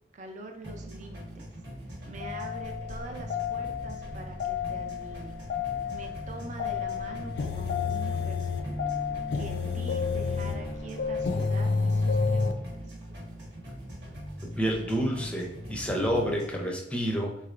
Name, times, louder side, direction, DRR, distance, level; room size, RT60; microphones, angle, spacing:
voice 1, 0.1-1.5 1.9-5.4 5.9-8.8 9.3-12.9, right 2 dB, 45° right, 3 dB, 0.4 m, -45 dB
sound 1, 0.6-16.6, right 1 dB, 70° right, 1.1 m, -41 dB
sound 2, 2.2-12.5, left 5 dB, 75° left, 0.4 m, -31 dB
voice 2, 14.6-17.3, equal, 5° left, 0 dB, 0.5 m, -28 dB
3.7 x 3.1 x 2.5 m, 0.77 s
head